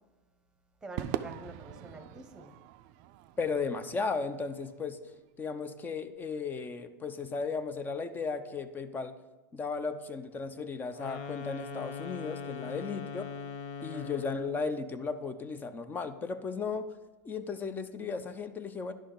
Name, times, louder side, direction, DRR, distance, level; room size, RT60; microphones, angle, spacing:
voice 1, 0.8-2.5 12.6-13.0 13.8-14.1, right 2 dB, 10° right, 8 dB, 0.9 m, -47 dB
Crowd / Fireworks, 1.0-5.5, right 12 dB, 55° right, 0.4 m, -42 dB
voice 2, 3.4-5.0 5.4-9.2 9.5-13.4 13.8-16.9 17.2-18.9, left 4 dB, 20° left, 11 dB, 0.5 m, -35 dB
sound 1, 10.9-14.5, left 6 dB, 60° left, 0.8 m, -41 dB
10.5 x 6.4 x 3.9 m, 1.1 s
supercardioid pair, 125°, 9 cm